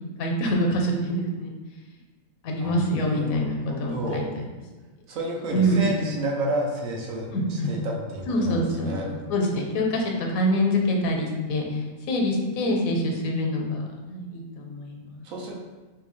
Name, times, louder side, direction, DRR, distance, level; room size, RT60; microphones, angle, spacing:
voice 1, 0.2-1.5 2.4-4.2 5.5-6.0 7.3-7.7 8.3-11.8 12.1-15.2, equal, 80° left, 1 dB, 1.0 m, -25 dB
voice 2, 3.7-4.3 5.1-9.1 15.2-15.6, right 1 dB, 80° right, -1 dB, 1.1 m, -30 dB
3.4 x 2.6 x 3.0 m, 1.2 s
omnidirectional pair, 1.4 m